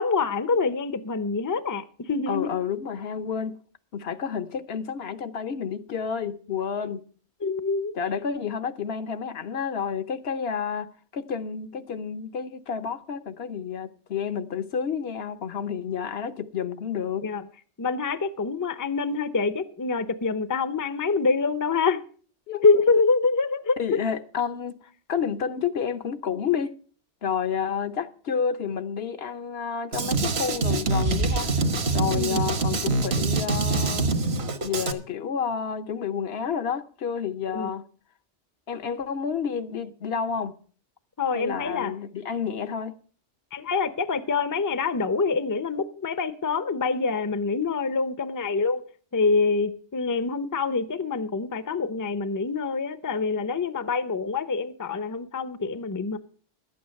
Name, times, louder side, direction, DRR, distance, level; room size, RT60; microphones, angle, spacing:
voice 1, 0.0-2.5 6.8-6.9 7.4-7.9 17.2-17.4 17.8-22.0 22.6-23.8 32.1-32.5 37.5-37.7 41.2-41.9 43.5-48.8 49.1-56.2, left 4 dB, 20° left, 0.5 m, -25 dB
voice 2, 2.3-3.6 3.9-7.1 7.9-17.3 22.5-22.6 22.9-23.0 23.8-26.8 27.2-31.5 31.9-34.1 34.6-37.8 38.7-40.6 41.3-43.0, left 7 dB, 65° left, 1.0 m, -30 dB
Drum kit, 29.9-34.9, right 3 dB, 65° right, 1.4 m, -25 dB
12.0 x 8.6 x 6.4 m
omnidirectional pair, 1.2 m